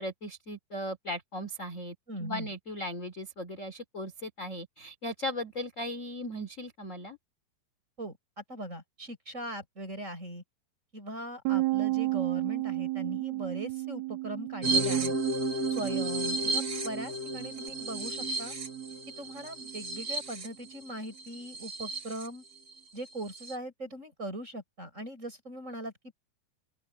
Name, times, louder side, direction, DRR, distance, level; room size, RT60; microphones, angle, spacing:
voice 1, 0.0-7.2, left 1 dB, 20° left, 2.5 m, -37 dB
voice 2, 2.1-2.5 8.0-10.4 10.9-15.2 15.7-18.5 19.2-22.4 22.9-25.9, right 1 dB, 15° right, 7.6 m, -40 dB
Bass guitar, 11.5-17.7, right 20 dB, 80° right, 2.5 m, -33 dB
sound 1, 14.6-22.3 22.7-22.8 23.1-23.6, right 3 dB, 40° right, 1.4 m, -32 dB
open air
omnidirectional pair, 4.6 m